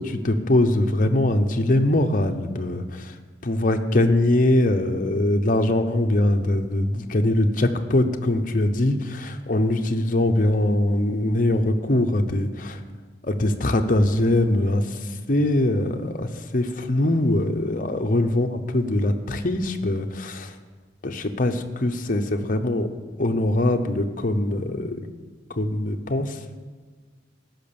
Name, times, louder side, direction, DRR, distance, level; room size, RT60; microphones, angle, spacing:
voice 1, 0.0-3.1 3.4-12.8 13.2-20.5 21.0-22.9 23.2-25.1 25.6-26.6, left 1 dB, 45° left, 5 dB, 0.8 m, -22 dB
14.0 x 5.9 x 7.0 m, 1.5 s
head